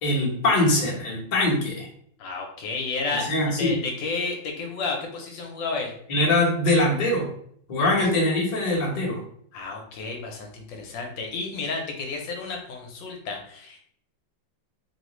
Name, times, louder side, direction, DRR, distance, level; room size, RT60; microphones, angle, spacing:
voice 1, 0.0-1.9 3.2-3.7 6.1-7.3 7.7-9.2, left 1 dB, 55° left, -5 dB, 0.4 m, -22 dB
voice 2, 2.2-3.3 3.6-5.9 9.5-13.8, left 4 dB, 75° left, 2 dB, 1.2 m, -31 dB
3.3 x 2.4 x 3.0 m, 0.67 s
omnidirectional pair, 2.2 m